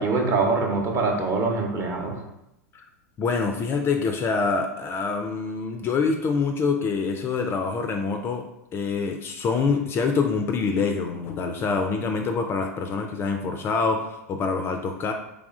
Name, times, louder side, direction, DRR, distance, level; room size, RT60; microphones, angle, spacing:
voice 1, 0.0-2.2, right 3 dB, 30° right, 1 dB, 0.8 m, -24 dB
voice 2, 3.2-15.1, left 4 dB, 25° left, 5 dB, 0.3 m, -26 dB
3.5 x 3.4 x 2.4 m, 0.86 s
hypercardioid pair, 95°, 9 cm